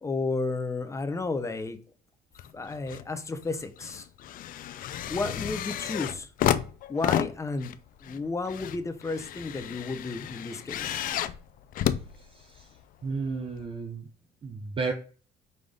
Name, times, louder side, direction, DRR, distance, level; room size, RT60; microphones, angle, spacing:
voice 1, 0.0-1.8 2.5-4.1 5.1-6.3 6.9-7.7 8.0-11.0, left 3 dB, 15° left, 9 dB, 0.6 m, -32 dB
sound 1, 2.4-3.1 3.4-12.8 13.6-13.7, left 11 dB, 55° left, 0.4 m, -32 dB
voice 2, 13.0-14.1 14.4-14.9, right 4 dB, 30° right, 3 dB, 0.7 m, -32 dB
5.4 x 2.5 x 3.3 m, 0.39 s
cardioid pair, 110°, 17 cm